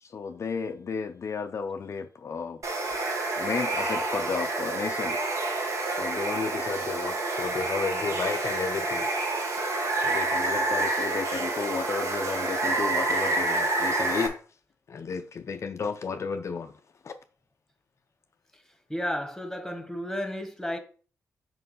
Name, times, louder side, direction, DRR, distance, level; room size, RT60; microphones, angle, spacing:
voice 1, 0.0-2.6 3.4-5.2 5.9-9.1 10.0-14.4 14.9-16.7 17.0-17.2, left 5 dB, 50° left, 0.5 m, -33 dB
Water, 2.6-14.3, right 2 dB, 60° right, 1.5 m, -28 dB
voice 2, 18.9-20.8, equal, 5° left, 1.3 m, -32 dB
4.5 x 4.4 x 5.4 m
cardioid pair, 60°, 6 cm